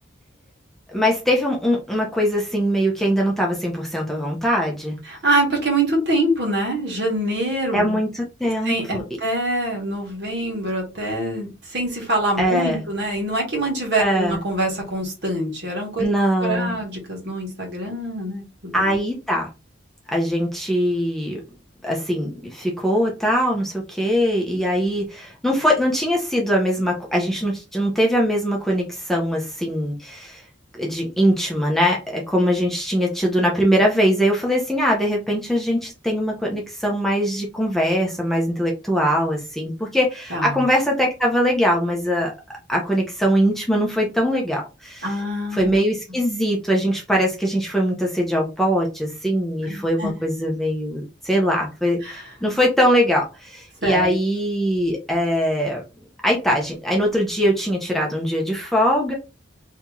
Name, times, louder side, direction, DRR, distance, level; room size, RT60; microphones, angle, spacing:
voice 1, 0.9-5.0 7.7-9.0 12.4-12.8 14.0-14.4 16.0-16.8 18.7-19.5 20.1-21.4 21.8-30.4 30.7-42.3 42.7-45.0 45.5-55.8 56.2-59.1, equal, ahead, 0.6 m, -21 dB
voice 2, 5.0-8.0 8.6-16.1 16.4-19.0 40.3-40.6 45.0-45.8 49.7-50.1 52.0-52.3 53.8-54.1, right 1 dB, 60° right, 1.4 m, -25 dB
2.9 x 2.7 x 3.6 m
head